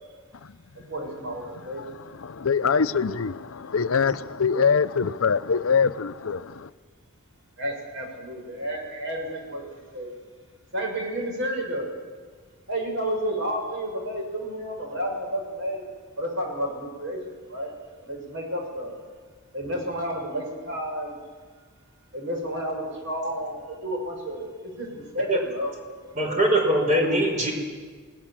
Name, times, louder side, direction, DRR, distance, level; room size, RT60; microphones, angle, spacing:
voice 1, 0.9-1.8 7.6-10.1 10.7-11.9 12.7-15.8 16.2-17.2 17.5-17.7 18.0-18.9 19.5-21.1 22.1-26.4, equal, 60° right, 6.7 m, -31 dB
voice 2, 1.8-6.7, left 5 dB, 65° left, 0.6 m, -24 dB
voice 3, 26.2-27.5, right 1 dB, 35° right, 5.6 m, -21 dB
29.0 x 19.0 x 7.5 m
head